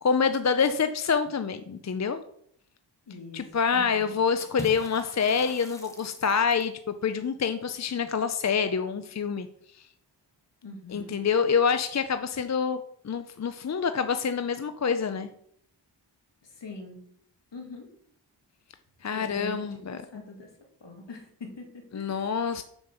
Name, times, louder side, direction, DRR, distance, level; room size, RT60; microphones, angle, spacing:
voice 1, 0.0-2.2 3.3-9.5 9.7-9.8 10.9-15.3 19.0-20.2 21.9-22.6, left 6 dB, 40° left, 9 dB, 0.5 m, -27 dB
voice 2, 3.1-4.1 10.6-11.2 16.4-17.0 17.5-17.9 19.1-20.5 20.8-22.2, left 2 dB, 70° left, 1 dB, 2.5 m, -43 dB
Water / Splash splatter, 4.4-6.8, equal, 5° left, 1.4 m, -43 dB
7.1 x 5.3 x 6.8 m, 0.68 s
wide cardioid pair, 85°, 44 cm